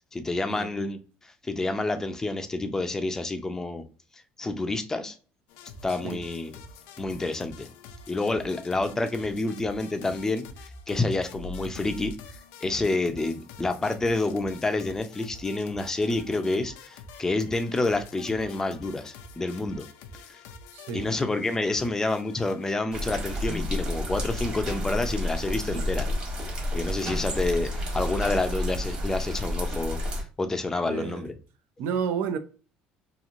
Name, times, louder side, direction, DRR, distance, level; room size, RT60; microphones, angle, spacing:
voice 1, 0.1-3.8 4.4-5.2 5.8-6.6 7.0-7.7 8.1-10.5 10.9-12.1 12.6-19.8 20.3-20.4 20.9-26.1 26.7-30.0 30.4-31.3, left 2 dB, 15° left, 0.4 m, -28 dB
sound 1, 5.5-22.7, left 3 dB, 80° left, 0.4 m, -46 dB
voice 2, 20.7-21.1 25.7-25.8 30.8-31.3 31.8-32.4, right 7 dB, 70° right, 0.4 m, -31 dB
sound 2, 22.9-30.2, left 1 dB, 30° right, 1.1 m, -30 dB
3.0 x 2.5 x 2.4 m
cardioid pair, 125°, 3 cm